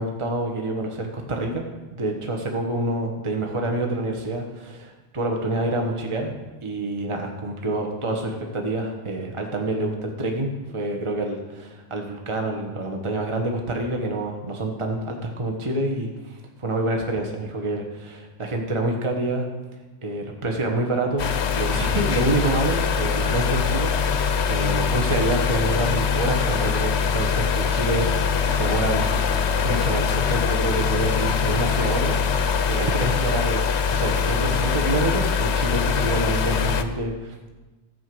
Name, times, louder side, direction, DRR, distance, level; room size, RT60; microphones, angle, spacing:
voice 1, 0.0-1.6 1.9-6.3 6.6-19.5 20.0-29.1 29.6-32.2 32.7-33.6 33.9-37.5, right 2 dB, 25° right, 2 dB, 1.2 m, -27 dB
sound 1, 21.2-36.8, left 6 dB, 60° left, 1.0 m, -23 dB
13.5 x 5.8 x 7.7 m, 1.2 s
omnidirectional pair, 1.4 m